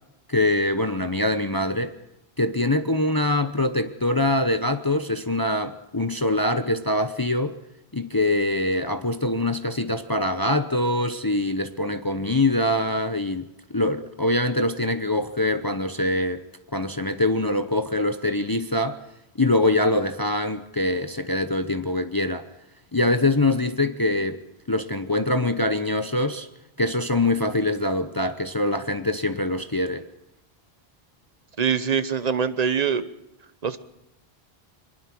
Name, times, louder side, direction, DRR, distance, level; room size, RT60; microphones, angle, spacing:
voice 1, 0.3-1.9 2.4-7.6 7.9-16.4 16.7-19.0 19.4-22.5 22.9-24.4 24.7-26.5 26.8-30.1, left 1 dB, 25° left, 0.8 m, -24 dB
voice 2, 31.6-33.1 33.6-33.8, right 6 dB, 40° right, 1.0 m, -23 dB
23.5 x 21.0 x 6.1 m
omnidirectional pair, 1.1 m